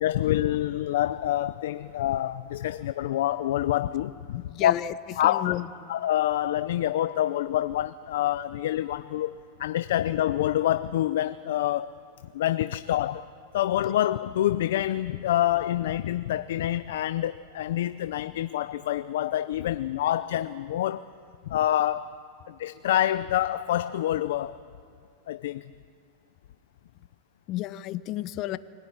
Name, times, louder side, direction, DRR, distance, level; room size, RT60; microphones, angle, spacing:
voice 1, 0.0-4.7 5.2-5.5 5.9-12.0 12.3-13.3 13.5-21.1 21.5-22.1 22.5-24.6 25.3-25.7, left 12 dB, 75° left, 0.6 m, -27 dB
voice 2, 4.5-4.9 5.2-5.9 27.5-28.6, left 15 dB, 45° left, 0.9 m, -32 dB
24.5 x 17.0 x 10.0 m
supercardioid pair, 125°, 0 cm